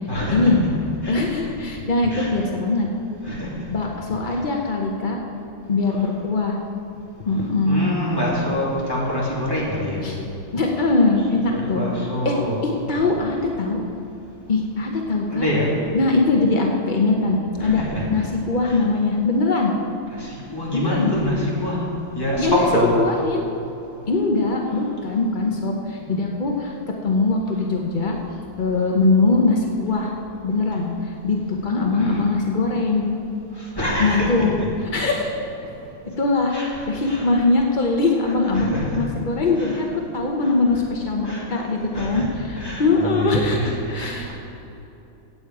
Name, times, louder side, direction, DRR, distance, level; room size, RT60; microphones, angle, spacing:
voice 1, 0.1-0.5 1.0-1.3 2.1-2.3 3.2-3.5 4.3-4.4 5.9-6.0 7.7-10.0 11.3-12.6 12.9-13.1 15.3-15.7 17.6-18.2 18.6-18.8 20.1-21.8 22.1-23.0 26.0-26.1 31.9-32.2 33.6-34.5 36.5-37.2 38.5-39.1 39.6-39.8 40.4-40.5 41.2-41.4 41.9-42.3 42.6-44.3, equal, 10° left, -6 dB, 2.7 m, -26 dB
voice 2, 1.1-2.9 3.7-5.2 5.7-6.6 7.2-7.9 10.0-10.2 10.5-11.9 12.2-12.3 12.6-13.8 14.5-15.5 15.9-17.8 18.1-19.7 20.7-21.1 22.4-22.6 22.9-23.5 24.1-28.2 28.6-30.1 30.4-33.1 34.0-34.5 34.9-35.3 36.2-39.9 40.1-44.3, left 3 dB, 70° left, 0 dB, 0.4 m, -21 dB
15.5 x 8.7 x 4.8 m, 2.9 s
omnidirectional pair, 2.3 m